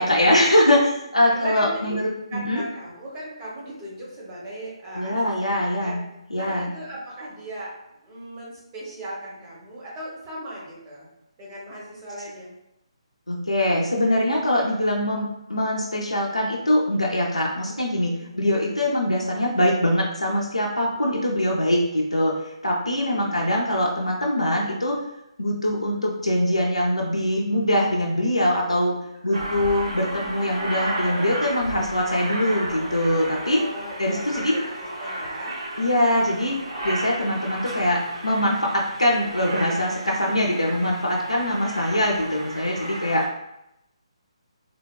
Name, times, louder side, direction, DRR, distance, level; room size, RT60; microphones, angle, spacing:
voice 1, 0.0-2.6 4.9-6.0 6.3-6.7 13.3-25.0 25.4-28.9 29.2-33.6 34.0-34.5 35.8-36.6 36.8-43.3, left 1 dB, 85° left, -2 dB, 0.5 m, -23 dB
voice 2, 1.3-2.0 2.3-6.0 6.3-7.7 8.0-11.1 11.4-12.5 18.0-18.3 20.9-21.5 23.0-23.4 29.2-29.5 33.5-35.6 36.8-37.0 41.3-41.5, right 1 dB, 20° right, -6 dB, 0.9 m, -38 dB
Aircraft, 29.3-43.3, right 1 dB, 60° right, 0.8 m, -33 dB
3.3 x 2.1 x 2.3 m, 0.85 s
figure-of-eight pair, 140°, 3 cm